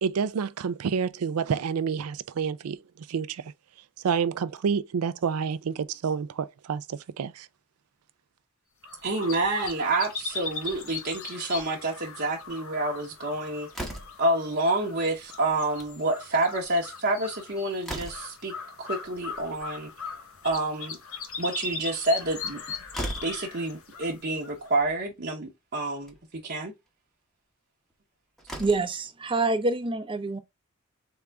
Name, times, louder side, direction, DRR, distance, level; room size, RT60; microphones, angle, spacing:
voice 1, 0.0-3.5 4.0-7.5, right 6 dB, 85° right, 0.4 m, -29 dB
sound 1, 8.8-24.9, left 5 dB, 70° left, 1.0 m, -40 dB
voice 2, 9.0-13.7 14.2-18.5 18.8-19.9 20.4-21.0 21.4-22.6 23.2-26.1 26.4-26.7, right 2 dB, 50° right, 0.9 m, -28 dB
Slam, 13.7-14.3 15.6-15.9 16.3-16.4 16.6-16.7 17.3-18.4 20.2-20.9 22.5-22.6 22.9-23.4 24.5-24.6 25.0-25.1 25.9-26.2 27.9-28.0 28.4-29.0, right 1 dB, ahead, 0.9 m, -37 dB
voice 3, 28.6-30.4, right 3 dB, 25° right, 0.6 m, -26 dB
3.9 x 3.5 x 3.4 m
head